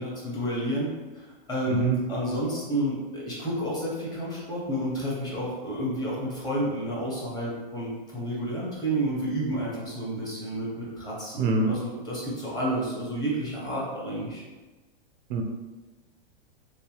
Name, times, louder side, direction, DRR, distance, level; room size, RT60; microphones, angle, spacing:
voice 1, 0.0-14.4, right 1 dB, 15° left, -6 dB, 1.0 m, -30 dB
voice 2, 11.4-11.7 15.3-15.4, right 4 dB, 50° right, 2 dB, 0.5 m, -24 dB
3.2 x 2.9 x 3.1 m, 1.2 s
hypercardioid pair, 140°, 30 cm